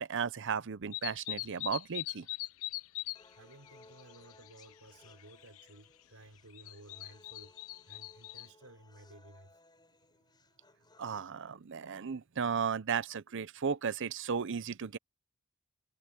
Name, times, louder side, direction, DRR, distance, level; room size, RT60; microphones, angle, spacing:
voice 1, 0.0-2.3 11.0-15.0, right 6 dB, 60° right, 0.6 m, -35 dB
sound 1, 0.9-3.2 3.5-4.7 5.1-5.6 6.5-8.5, left 18 dB, 70° left, 0.5 m, -40 dB
sound 2, 3.1-11.1, left 2 dB, 20° left, 4.0 m, -62 dB
voice 2, 3.4-7.5 7.9-9.6, right 1 dB, 85° right, 4.6 m, -56 dB
head